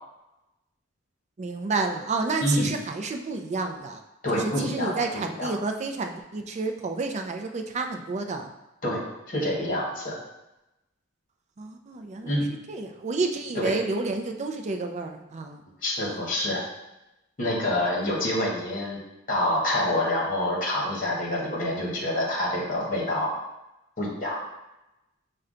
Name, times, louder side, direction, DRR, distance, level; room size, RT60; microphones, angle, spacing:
voice 1, 1.4-4.0 4.3-8.5 11.6-12.4 12.7-15.6, right 3 dB, 35° right, 5 dB, 0.4 m, -30 dB
voice 2, 4.2-5.5 8.8-9.0 9.3-10.2 12.2-12.5 13.5-13.8 15.8-16.6 17.4-19.0 19.3-23.3 24.0-24.4, left 1 dB, 45° left, -3 dB, 1.2 m, -27 dB
5.7 x 2.2 x 3.7 m, 0.95 s
head